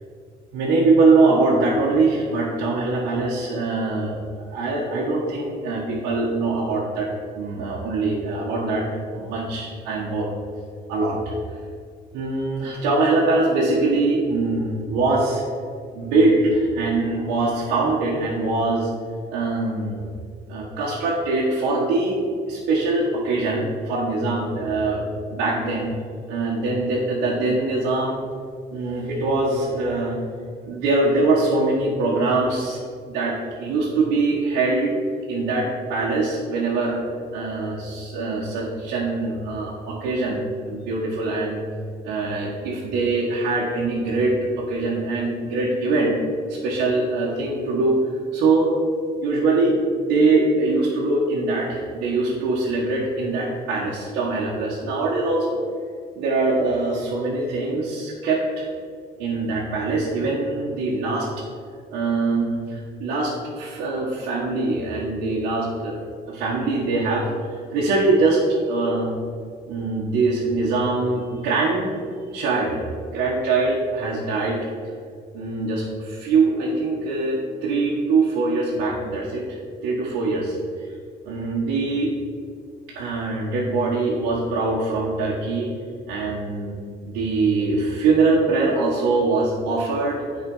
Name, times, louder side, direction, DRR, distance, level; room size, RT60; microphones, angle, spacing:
voice 1, 0.5-4.2 4.5-7.1 7.3-10.3 10.9-11.6 12.1-15.4 15.9-18.9 19.3-20.0 20.5-22.2 22.5-25.0 25.3-25.9 26.3-28.2 28.7-30.2 30.6-32.8 33.1-35.0 35.3-37.0 37.3-41.6 42.0-46.1 46.5-48.0 48.3-48.8 49.2-55.6 56.2-58.7 59.2-61.3 61.9-66.0 66.3-68.4 68.7-69.2 69.7-71.9 72.3-72.8 73.1-74.6 75.3-80.9 81.2-82.1 82.9-85.7 86.1-86.7 87.0-90.2, right 3 dB, 90° right, -6 dB, 1.4 m, -23 dB
9.0 x 4.8 x 5.5 m, 2.2 s
cardioid pair, 110°, 17 cm